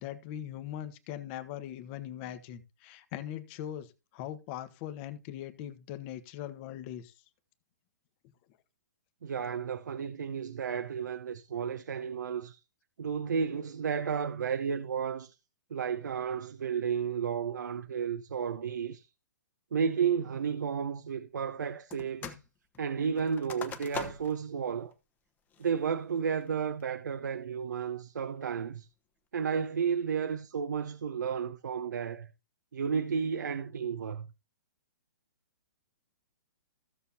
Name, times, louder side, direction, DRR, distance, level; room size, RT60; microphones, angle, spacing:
voice 1, 0.0-7.1, left 11 dB, 35° left, 1.3 m, -41 dB
voice 2, 9.2-12.6 13.0-15.3 15.7-19.1 19.7-22.4 22.8-24.9 25.6-28.9 29.3-32.3 32.7-34.3, right 7 dB, 75° right, 0.8 m, -32 dB
sound 1, 21.9-22.5 22.7-24.5 24.9-25.0 25.5-25.9 26.4-26.8, left 6 dB, 15° left, 1.1 m, -42 dB
15.5 x 6.9 x 2.8 m
hypercardioid pair, 130°, 10 cm